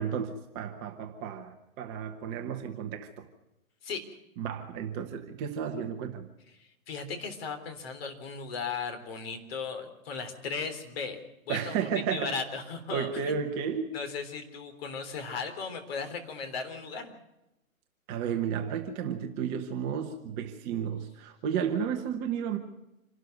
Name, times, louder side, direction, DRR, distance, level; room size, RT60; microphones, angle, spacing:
voice 1, 0.0-3.3 4.4-6.3 11.5-12.3 12.9-13.9 18.1-22.6, right 7 dB, 20° right, 5 dB, 1.1 m, -33 dB
voice 2, 6.6-13.3 13.9-17.1, left 5 dB, 40° left, 6 dB, 3.6 m, -37 dB
27.0 x 12.5 x 7.8 m, 0.93 s
hypercardioid pair, 145°, 43 cm